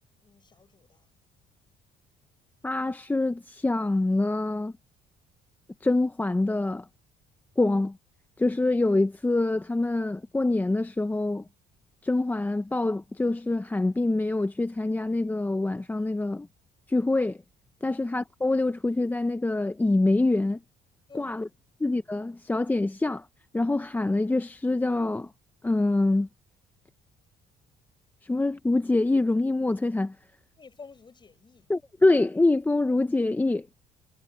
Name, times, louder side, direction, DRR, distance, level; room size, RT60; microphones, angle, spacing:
voice 1, 0.2-1.1 21.1-21.4 30.6-31.7, left 5 dB, 25° left, 4.5 m, -50 dB
voice 2, 2.6-4.7 5.8-6.8 7.6-8.0 8.4-11.4 12.0-16.5 16.9-17.4 17.8-20.6 21.1-21.5 21.8-23.3 23.5-25.3 25.6-26.3 28.2-30.1 31.7-33.7, left 2 dB, 10° left, 0.7 m, -25 dB
cardioid pair, 110°, 17 cm